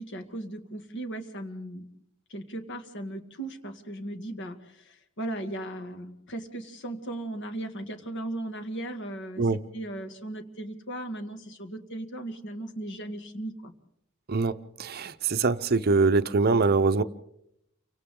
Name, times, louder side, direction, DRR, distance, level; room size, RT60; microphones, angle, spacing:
voice 1, 0.0-1.9 2.3-9.5 9.7-13.7, right 1 dB, 60° left, 7 dB, 2.1 m, -37 dB
voice 2, 14.3-17.0, right 3 dB, 45° right, 13 dB, 0.7 m, -23 dB
29.5 x 25.0 x 3.8 m, 0.78 s
head